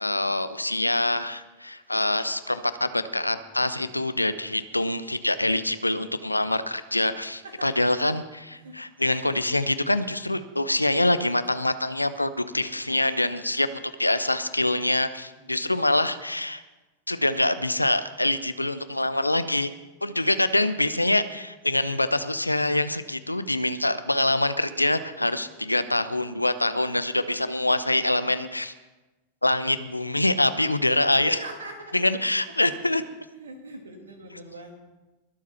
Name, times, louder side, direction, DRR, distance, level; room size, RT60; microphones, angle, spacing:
voice 1, 0.0-16.6 17.1-19.7 20.0-28.7 29.4-31.4 31.9-33.0, left 1 dB, 85° left, 13 dB, 0.7 m, -25 dB
voice 2, 7.4-7.7 8.5-8.9 15.4-16.0 31.1-32.1 32.5-32.6 32.9-33.0 33.3-34.8, right 2 dB, 70° right, 4 dB, 2.7 m, -42 dB
21.5 x 7.4 x 5.8 m, 1.1 s
figure-of-eight pair, 90°, 0 cm